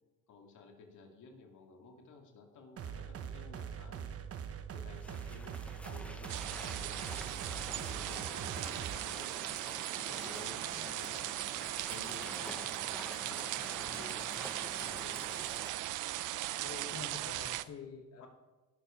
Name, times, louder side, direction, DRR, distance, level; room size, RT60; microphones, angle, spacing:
voice 1, 0.3-4.1 4.7-9.3 10.0-11.3 11.9-15.5 18.2-18.3, left 4 dB, 75° left, 2 dB, 2.2 m, -54 dB
sound 1, 2.8-9.0, right 8 dB, 50° right, 1.0 m, -43 dB
sound 2, 4.9-15.7, left 1 dB, 5° left, 0.8 m, -49 dB
sound 3, 6.3-17.6, right 15 dB, 85° right, 0.5 m, -38 dB
voice 2, 16.6-18.3, left 6 dB, 55° left, 1 dB, 1.6 m, -47 dB
17.0 x 7.2 x 5.1 m, 1.2 s
cardioid pair, 90°, 30 cm